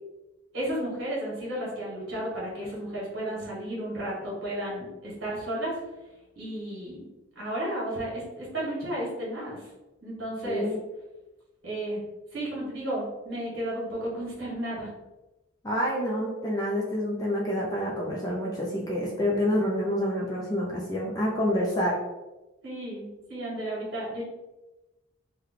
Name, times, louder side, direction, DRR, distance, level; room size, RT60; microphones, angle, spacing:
voice 1, 0.5-5.7 6.3-7.1 7.3-9.7 10.0-10.7 11.6-12.0 12.3-14.9 22.6-24.2, right 1 dB, 65° right, -7 dB, 1.4 m, -33 dB
voice 2, 10.4-10.8 15.6-22.0, equal, 20° left, -4 dB, 0.5 m, -28 dB
3.2 x 2.2 x 3.6 m, 1.0 s
head